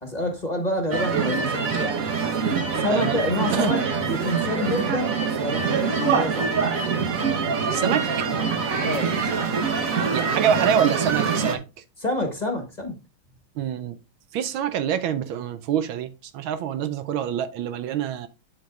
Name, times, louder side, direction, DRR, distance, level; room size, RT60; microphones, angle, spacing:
voice 1, 0.0-2.0 2.7-3.8 4.1-6.5 8.8-9.1 12.0-13.0, left 1 dB, 20° left, 1.6 m, -28 dB
sound 1, 0.9-11.5, right 5 dB, 45° right, 1.4 m, -24 dB
voice 2, 7.7-8.1 10.1-11.6 13.6-14.0 14.3-18.3, right 9 dB, 75° right, 1.4 m, -25 dB
8.9 x 7.4 x 2.4 m
omnidirectional pair, 2.3 m